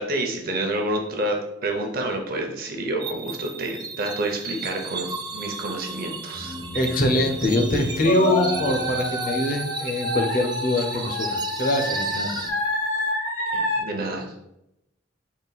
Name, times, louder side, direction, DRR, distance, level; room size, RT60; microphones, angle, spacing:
voice 1, 0.0-6.5 13.5-14.4, right 1 dB, 50° right, 2 dB, 0.7 m, -29 dB
sound 1, 3.0-12.5, right 5 dB, 20° right, 0.3 m, -35 dB
sound 2, 6.3-10.0, left 1 dB, 70° left, 1.0 m, -36 dB
voice 2, 6.7-12.4, left 2 dB, 50° left, 3 dB, 0.6 m, -23 dB
sound 3, 8.0-13.8, left 1 dB, 90° left, 1.3 m, -27 dB
4.0 x 2.3 x 4.0 m, 0.83 s
head